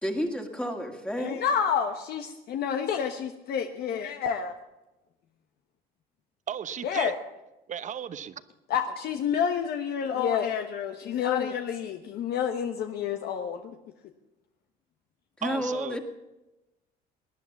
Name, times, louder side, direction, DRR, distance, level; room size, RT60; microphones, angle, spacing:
voice 1, 0.0-1.3 15.4-16.0, equal, 5° left, 2 dB, 2.1 m, -30 dB
voice 2, 1.2-4.5 6.8-7.2 8.7-13.6, left 7 dB, 70° left, 5 dB, 1.1 m, -29 dB
voice 3, 6.5-7.1 7.7-8.3 15.4-16.0, right 8 dB, 45° right, 13 dB, 1.0 m, -35 dB
19.0 x 10.5 x 7.1 m, 1.0 s
cardioid pair, 110°, 17 cm